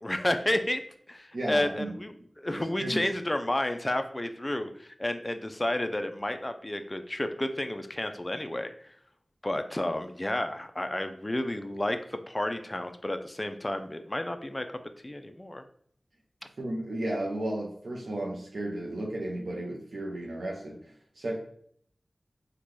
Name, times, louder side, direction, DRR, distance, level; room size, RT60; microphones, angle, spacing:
voice 1, 0.0-0.8 1.1-8.9 9.4-14.6 15.0-15.6, left 1 dB, 25° left, 7 dB, 0.4 m, -31 dB
voice 2, 1.3-1.9 2.5-3.0 16.6-21.4, right 1 dB, 80° right, -2 dB, 0.6 m, -34 dB
3.8 x 2.2 x 3.0 m, 0.63 s
cardioid pair, 45°, 0 cm